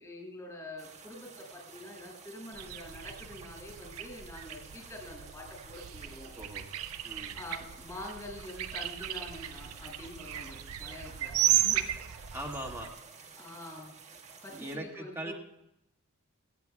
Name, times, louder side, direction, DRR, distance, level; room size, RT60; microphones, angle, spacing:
voice 1, 0.0-6.3 7.3-11.8 13.4-13.9 14.4-15.3, left 1 dB, 15° left, 0 dB, 6.4 m, -46 dB
sound 1, 0.8-14.8, right 5 dB, 30° right, 1.7 m, -52 dB
sound 2, 2.5-12.9, right 12 dB, 70° right, 0.7 m, -35 dB
voice 2, 6.3-6.6 7.0-7.4 12.3-12.9 14.5-15.3, right 1 dB, 10° right, -2 dB, 2.0 m, -40 dB
29.5 x 9.9 x 2.3 m, 0.84 s
head